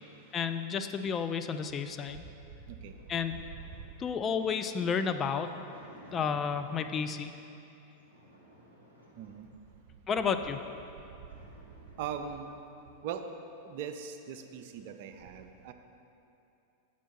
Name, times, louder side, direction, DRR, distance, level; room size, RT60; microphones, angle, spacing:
voice 1, 0.3-2.2 3.1-3.4 4.0-5.5 6.1-7.3 10.1-10.6, left 6 dB, 25° left, 8 dB, 0.3 m, -31 dB
sound 1, 2.2-7.3 7.9-9.9 10.4-10.5 10.7-12.6, right 1 dB, 90° left, 1.1 m, -57 dB
voice 2, 9.2-9.5 12.0-12.6 13.0-13.2 13.6-15.7, right 8 dB, 50° right, 7 dB, 0.4 m, -40 dB
7.1 x 4.4 x 5.9 m, 2.7 s
figure-of-eight pair, 90°, 0 cm